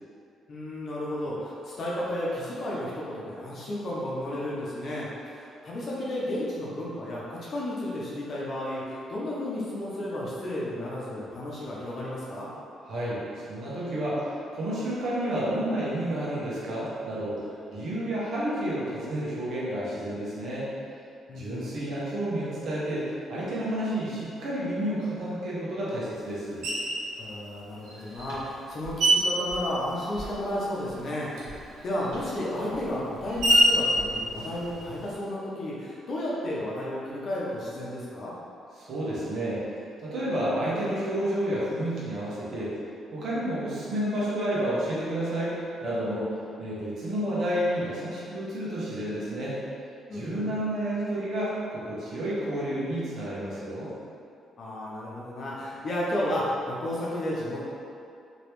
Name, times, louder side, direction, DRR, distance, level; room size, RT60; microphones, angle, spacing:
voice 1, 0.5-12.5 21.3-21.7 27.2-38.3 50.1-50.5 54.6-57.6, left 1 dB, 50° left, -6 dB, 0.7 m, -33 dB
voice 2, 12.8-20.7 21.3-26.7 38.8-39.6 40.0-42.7 43.1-45.6 45.8-46.3 46.6-49.6 50.1-53.9, right 1 dB, 65° right, -8 dB, 1.1 m, -30 dB
Screech, 26.6-27.1 27.8-30.6 30.8-35.1, right 1 dB, 80° right, 0.7 m, -27 dB
3.1 x 3.0 x 3.0 m, 2.5 s
cardioid pair, 90°, 0 cm